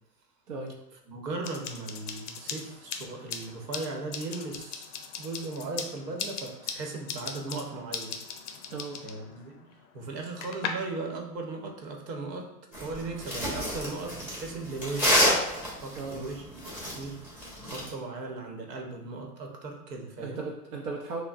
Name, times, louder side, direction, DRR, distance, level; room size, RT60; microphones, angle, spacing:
voice 1, 0.5-0.8 8.7-9.0 16.0-16.3 20.2-21.2, right 3 dB, 60° right, -1 dB, 0.7 m, -36 dB
voice 2, 1.1-4.9 5.2-8.2 9.0-9.7 9.9-15.2 15.8-20.4, right 3 dB, 75° right, 2 dB, 1.0 m, -37 dB
sound 1, 1.4-10.7, left 7 dB, 50° left, 0.5 m, -40 dB
sound 2, 12.7-17.9, equal, 5° right, 1.0 m, -28 dB
5.7 x 2.1 x 2.4 m, 0.83 s
hypercardioid pair, 130°, 49 cm